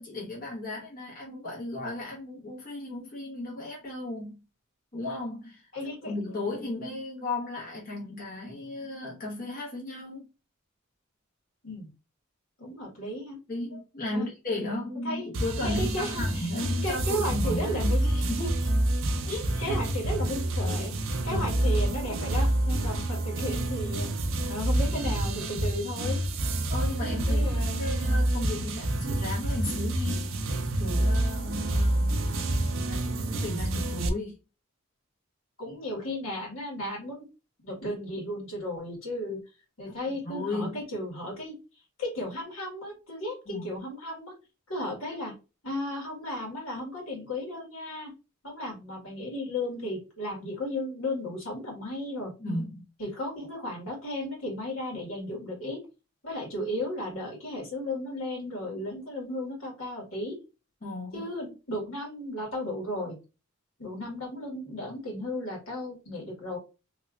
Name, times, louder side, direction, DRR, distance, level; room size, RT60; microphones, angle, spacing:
voice 1, 0.0-4.4 4.9-5.7 6.0-10.2 13.5-18.7 19.2-19.8 21.3-21.4 26.7-27.4 27.8-34.4 39.8-39.9 40.2-40.8 43.5-43.7 45.1-45.2 52.4-52.9 60.8-61.2, left 2 dB, 45° left, 1.2 m, -35 dB
voice 2, 5.7-6.1 11.6-11.9 12.6-13.4 14.1-14.3 15.0-15.2 15.6-16.5 16.8-18.0 19.6-24.1 24.5-26.2 27.3-27.9 35.6-37.2 37.6-39.4 39.8-41.6 42.0-44.3 44.7-45.3 45.6-48.1 48.4-52.3 53.0-55.8 56.2-60.4 61.1-63.2 63.8-66.6, left 1 dB, 80° left, 2.0 m, -34 dB
sound 1, 15.3-34.1, right 1 dB, 75° right, 0.6 m, -28 dB
3.3 x 2.9 x 2.5 m
head